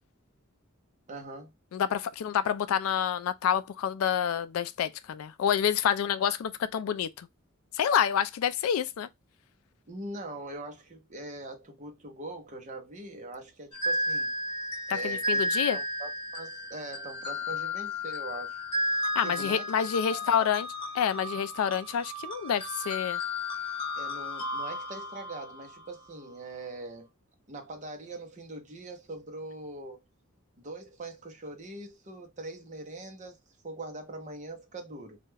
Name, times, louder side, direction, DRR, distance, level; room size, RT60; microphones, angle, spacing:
voice 1, 1.1-1.5 9.9-14.3 14.9-18.6 19.2-20.3 24.0-27.1 27.5-30.0 30.6-33.4 33.6-35.2, right 2 dB, 35° right, 0.6 m, -42 dB
voice 2, 1.7-7.3 7.7-9.1 14.9-15.8 19.2-20.7 20.9-23.2, left 8 dB, 75° left, 0.3 m, -28 dB
sound 1, 13.7-26.1, left 1 dB, 20° left, 0.9 m, -33 dB
2.3 x 2.1 x 3.1 m
head